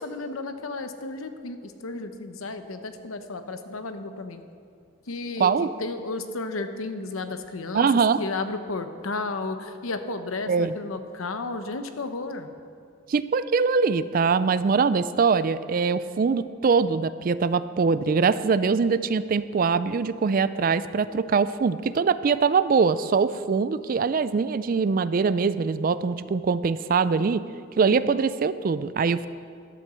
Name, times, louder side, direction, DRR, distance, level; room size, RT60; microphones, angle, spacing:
voice 1, 0.0-4.4 5.1-7.9 8.2-12.5 27.9-28.2, left 3 dB, 90° left, 9 dB, 0.9 m, -33 dB
voice 2, 5.4-5.7 7.7-8.2 10.5-10.7 13.1-27.4 27.8-29.3, right 5 dB, 45° right, 14 dB, 0.3 m, -23 dB
12.0 x 8.1 x 6.9 m, 2.3 s
head